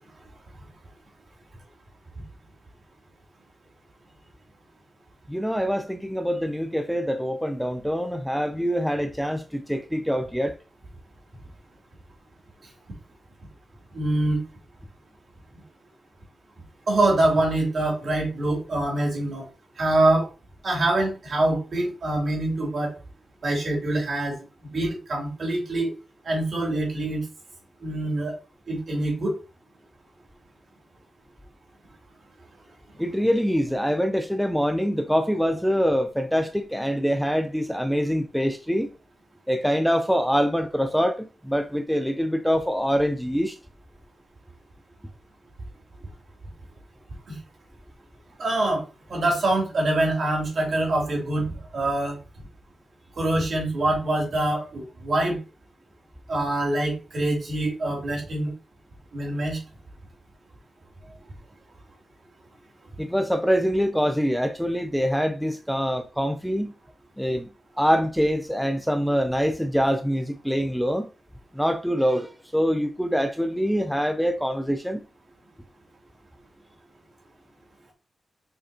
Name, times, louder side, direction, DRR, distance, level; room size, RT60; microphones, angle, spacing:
voice 1, 5.3-10.5 33.0-38.9 39.5-43.6 63.0-66.7 67.2-67.5 67.8-71.1 71.5-75.0, equal, ahead, 0.4 m, -24 dB
voice 2, 13.9-14.4 16.9-19.5 19.8-20.3 20.6-22.9 23.4-25.9 26.2-27.3 27.8-28.3 28.7-29.3 47.3-47.4 48.4-48.8 49.1-52.2 53.2-55.4 56.3-58.5 59.1-59.6, right 2 dB, 50° right, 2.8 m, -25 dB
6.6 x 5.1 x 2.8 m
wide cardioid pair, 160°, 0 cm